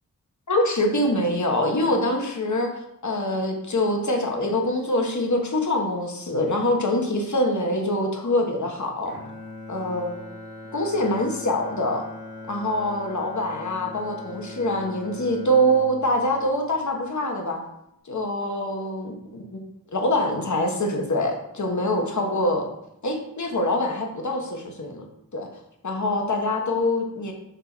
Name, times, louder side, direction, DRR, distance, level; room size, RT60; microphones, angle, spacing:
voice 1, 0.5-2.7 3.0-9.2 9.7-10.2 10.7-12.0 12.5-17.6 18.1-19.6 19.9-22.7 23.0-25.0 25.3-25.5 25.8-27.3, left 1 dB, 55° left, 2 dB, 1.4 m, -24 dB
Bowed string instrument, 9.0-17.3, left 2 dB, 75° left, 2.3 m, -41 dB
6.5 x 3.8 x 6.1 m, 0.81 s
cardioid pair, 45°, 36 cm